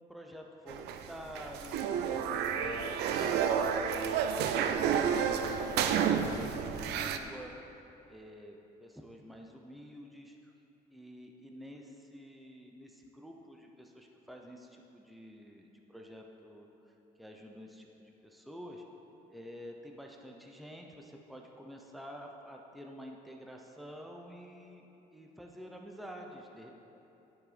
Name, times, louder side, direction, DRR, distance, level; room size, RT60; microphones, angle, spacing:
voice 1, 0.0-1.9 2.5-7.5 8.1-10.5 10.9-16.7 17.2-18.8 19.3-26.7, equal, ahead, 1 dB, 0.7 m, -48 dB
sound 1, 0.7-7.2, right 7 dB, 80° right, 0.5 m, -30 dB
10.5 x 6.0 x 5.1 m, 3.0 s
cardioid pair, 110°, 17 cm